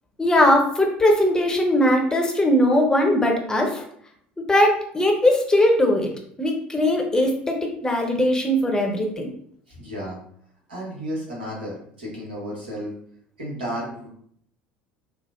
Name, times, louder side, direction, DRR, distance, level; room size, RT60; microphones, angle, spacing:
voice 1, 0.2-3.8 4.5-6.1 6.4-9.3, left 1 dB, 15° left, 1 dB, 0.7 m, -20 dB
voice 2, 9.7-10.2 10.7-12.9 13.4-14.1, equal, 75° right, -4 dB, 1.1 m, -32 dB
3.3 x 2.0 x 2.5 m, 0.64 s
figure-of-eight pair, 70°, 5 cm